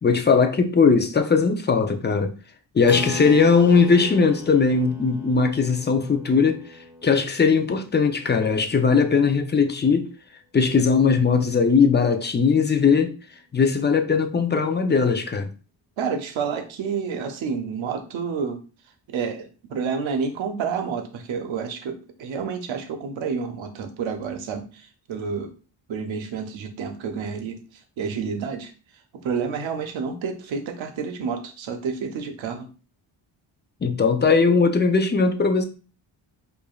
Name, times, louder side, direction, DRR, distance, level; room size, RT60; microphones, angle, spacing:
voice 1, 0.0-2.3 2.7-6.6 7.0-10.1 10.5-13.1 13.5-15.5 33.8-35.6, left 5 dB, 25° left, 0.5 m, -19 dB
Keyboard (musical), 2.9-8.9, equal, 5° right, 1.0 m, -38 dB
voice 2, 16.0-18.6 19.1-25.5 25.9-27.6 28.0-28.7 29.1-32.7, right 6 dB, 75° right, 0.8 m, -29 dB
4.8 x 2.6 x 2.3 m
cardioid pair, 95°, 47 cm